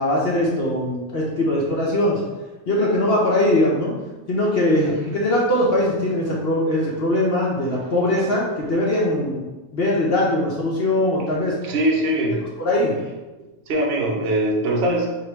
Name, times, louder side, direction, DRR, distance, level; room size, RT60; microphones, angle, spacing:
voice 1, 0.0-2.2 2.7-3.9 4.3-9.4 9.7-11.5 12.6-12.9, left 1 dB, 50° left, -4 dB, 0.9 m, -21 dB
voice 2, 11.6-12.4 13.7-15.1, right 1 dB, 50° right, -1 dB, 0.9 m, -21 dB
3.0 x 2.9 x 4.5 m, 1.1 s
omnidirectional pair, 1.6 m